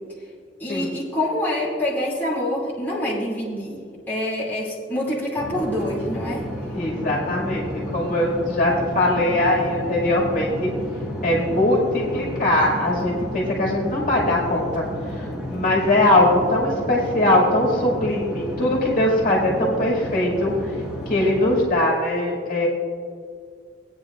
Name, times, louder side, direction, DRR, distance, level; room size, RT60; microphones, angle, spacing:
voice 1, 0.6-6.5, left 1 dB, 10° left, -7 dB, 2.6 m, -26 dB
sound 1, 5.3-21.6, left 1 dB, 5° right, 1.5 m, -32 dB
voice 2, 6.7-7.6 7.9-10.7 11.2-14.8 15.2-20.5 21.1-22.7, left 1 dB, 50° left, -4 dB, 2.3 m, -21 dB
18.0 x 9.3 x 2.5 m, 2.1 s
head